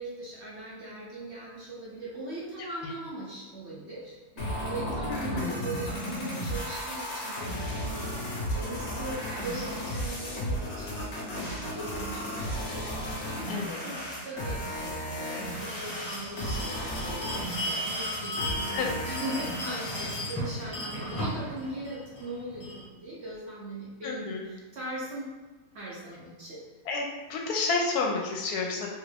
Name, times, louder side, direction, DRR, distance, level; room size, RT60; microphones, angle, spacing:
voice 1, 0.0-25.3 25.7-26.6, right 1 dB, 50° right, -6 dB, 0.9 m, -40 dB
sound 1, 4.4-20.4, equal, 50° left, 1.0 m, -34 dB
voice 2, 5.1-5.6 13.5-13.8 18.7-18.9 24.0-24.4 26.9-28.9, left 4 dB, 80° left, 0 dB, 1.1 m, -30 dB
Bell, 15.6-22.8, equal, 30° left, 0.9 m, -36 dB
3.2 x 2.5 x 3.3 m, 1.2 s
omnidirectional pair, 1.7 m